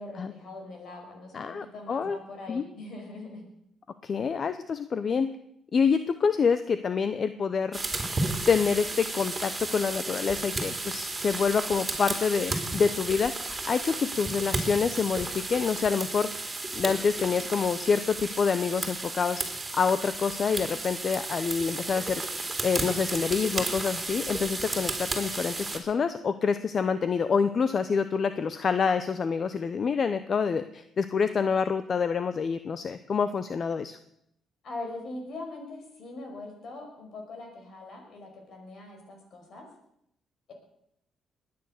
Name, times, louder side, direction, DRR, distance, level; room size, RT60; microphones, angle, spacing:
voice 1, 0.0-3.4 34.6-39.7, left 2 dB, 65° left, 3 dB, 5.6 m, -42 dB
voice 2, 1.3-2.2 2.5-2.6 4.0-5.3 5.7-7.8 8.5-16.3 16.8-19.4 19.7-22.2 22.6-34.0, left 5 dB, 45° left, 12 dB, 0.7 m, -27 dB
sound 1, 7.7-25.8, right 2 dB, 20° right, 3.4 m, -33 dB
20.5 x 9.6 x 6.6 m, 0.75 s
cardioid pair, 90°, 0 cm